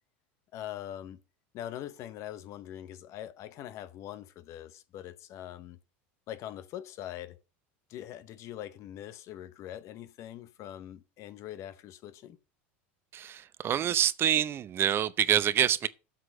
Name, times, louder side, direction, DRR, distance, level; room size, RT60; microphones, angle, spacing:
voice 1, 0.5-1.2 1.5-5.8 6.3-7.4 7.9-12.4, left 12 dB, 50° left, 0.9 m, -42 dB
voice 2, 13.1-15.9, right 10 dB, 35° right, 0.6 m, -26 dB
7.9 x 6.3 x 6.4 m
supercardioid pair, 100°, 6 cm